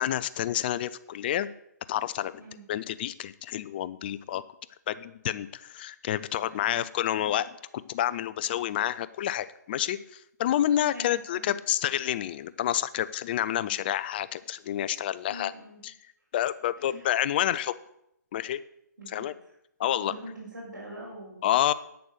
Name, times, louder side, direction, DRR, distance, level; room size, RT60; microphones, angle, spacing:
voice 1, 0.0-1.5 1.9-2.3 2.7-4.4 4.9-15.5 15.8-15.9 16.3-17.8 18.3-18.6 19.1-19.3 19.8-20.1 21.4-21.7, left 12 dB, 30° left, 15 dB, 0.4 m, -29 dB
voice 2, 6.4-6.8 10.8-11.5 15.3-15.8 16.8-17.1 19.0-19.3 20.0-21.5, right 1 dB, 90° right, -7 dB, 4.4 m, -44 dB
9.0 x 6.8 x 6.5 m, 0.77 s
hypercardioid pair, 155°, 10 cm